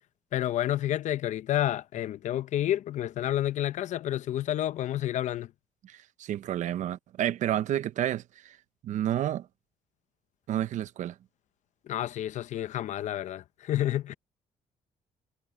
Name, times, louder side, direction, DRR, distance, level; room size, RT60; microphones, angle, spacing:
voice 1, 0.3-5.5 11.9-14.1, left 12 dB, 65° left, 0.7 m, -29 dB
voice 2, 5.8-8.6 8.8-9.5 10.5-11.1, right 11 dB, 70° right, 0.9 m, -30 dB
cardioid pair, 105°, 13 cm